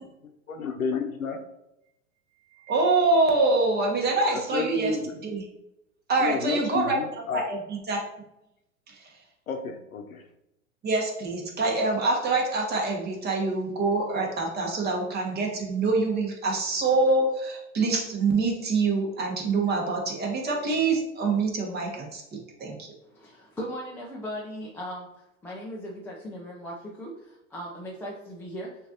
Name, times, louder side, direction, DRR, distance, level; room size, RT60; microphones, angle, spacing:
voice 1, 0.6-1.4 4.3-5.1 6.2-7.5 9.5-10.2, left 5 dB, 90° left, 4 dB, 0.8 m, -31 dB
voice 2, 2.7-5.0 5.2-5.4 6.1-7.0 7.3-8.0 8.9-9.0 10.8-22.2 22.6-22.9, right 3 dB, 25° right, 0 dB, 1.2 m, -25 dB
voice 3, 23.1-25.1 25.4-28.7, equal, 5° left, -4 dB, 0.4 m, -38 dB
6.6 x 2.7 x 2.7 m, 0.86 s
hypercardioid pair, 105°, 41 cm